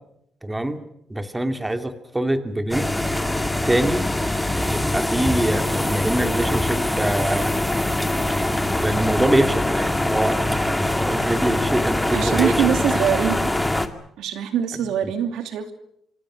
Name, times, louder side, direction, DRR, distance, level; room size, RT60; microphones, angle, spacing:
voice 1, 0.4-0.8 1.1-2.9 3.7-4.1 4.4-7.6 8.8-13.0, right 1 dB, 10° right, 8 dB, 2.5 m, -24 dB
sound 1, 2.7-13.9, left 1 dB, 10° left, 2.1 m, -23 dB
voice 2, 12.1-13.6 14.2-15.7, right 9 dB, 85° right, 8 dB, 2.7 m, -23 dB
26.0 x 25.5 x 6.3 m, 0.75 s
cardioid pair, 90°, 0 cm